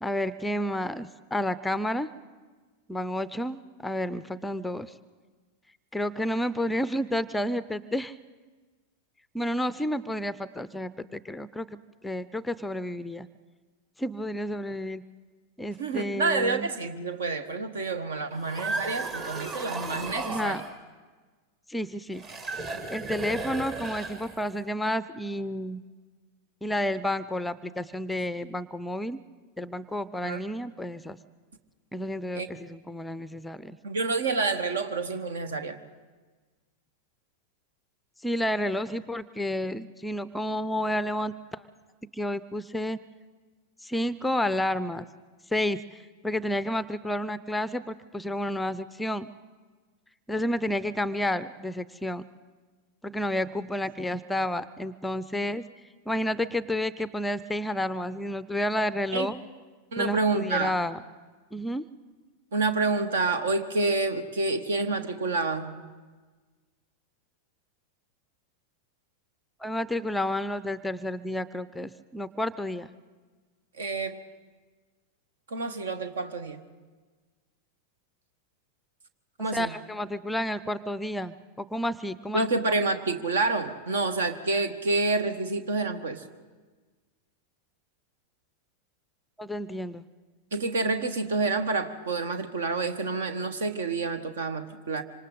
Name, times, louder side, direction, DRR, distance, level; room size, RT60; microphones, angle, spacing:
voice 1, 0.0-2.1 2.9-4.9 5.9-8.1 9.3-11.7 12.0-13.3 14.0-15.0 15.6-16.7 20.2-20.6 21.7-22.2 22.9-25.8 26.6-29.2 29.6-31.2 31.9-33.8 38.2-41.6 42.1-43.0 43.8-45.1 45.5-49.3 50.3-52.2 53.0-55.6 56.1-59.4 60.0-61.0 61.5-61.8 69.6-72.9 79.5-82.5 89.4-90.1, left 1 dB, 5° left, 16 dB, 0.5 m, -30 dB
voice 2, 15.8-20.6 30.2-30.4 32.3-32.5 33.8-35.8 59.1-59.3 59.9-60.7 62.5-65.9 73.7-74.2 75.5-76.6 79.4-79.7 82.3-86.3 90.5-95.0, right 3 dB, 65° right, 11 dB, 1.3 m, -28 dB
sound 1, 18.3-20.7 22.1-24.6, right 3 dB, 35° right, 2.3 m, -34 dB
26.0 x 25.5 x 3.9 m, 1.4 s
figure-of-eight pair, 90°, 0 cm